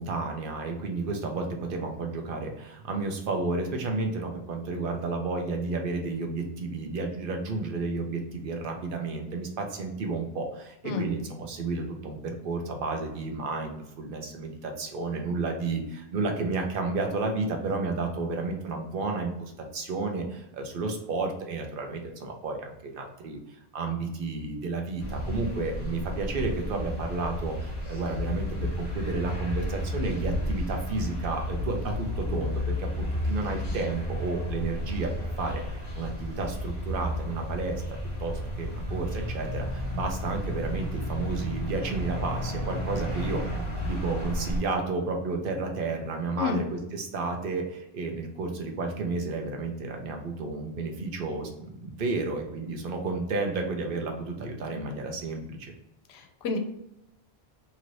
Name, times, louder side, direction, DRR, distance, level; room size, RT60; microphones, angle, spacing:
voice 1, 0.0-28.5 28.8-37.8 38.2-55.7, right 3 dB, 60° right, 3 dB, 0.8 m, -32 dB
sound 1, 25.0-44.6, equal, 30° left, 1.1 m, -32 dB
voice 2, 56.1-56.6, left 5 dB, 80° left, 6 dB, 0.8 m, -30 dB
2.9 x 2.6 x 3.0 m, 0.85 s
omnidirectional pair, 1.1 m